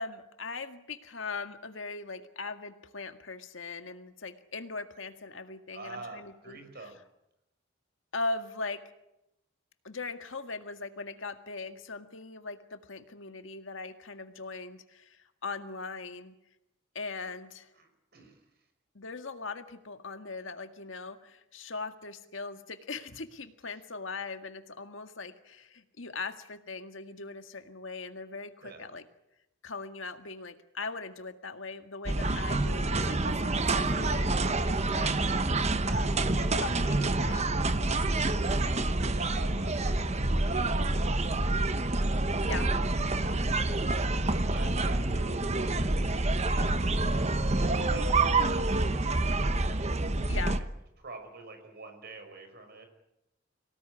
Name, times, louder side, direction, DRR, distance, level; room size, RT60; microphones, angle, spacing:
voice 1, 0.0-6.6 8.1-8.8 9.8-16.4 17.0-17.7 19.0-29.0 29.6-35.2 35.9-36.3 36.6-37.5 42.5-42.7 50.3-50.6, left 3 dB, 75° left, 8 dB, 1.9 m, -40 dB
voice 2, 5.7-7.0 17.8-18.4 28.6-28.9 36.3-36.5 39.1-43.9 44.3-49.1 49.4-49.8 51.0-52.9, right 3 dB, 55° right, 6 dB, 5.4 m, -47 dB
sound 1, 32.1-50.6, right 2 dB, 35° right, 1.1 m, -27 dB
25.0 x 17.5 x 9.8 m, 0.88 s
head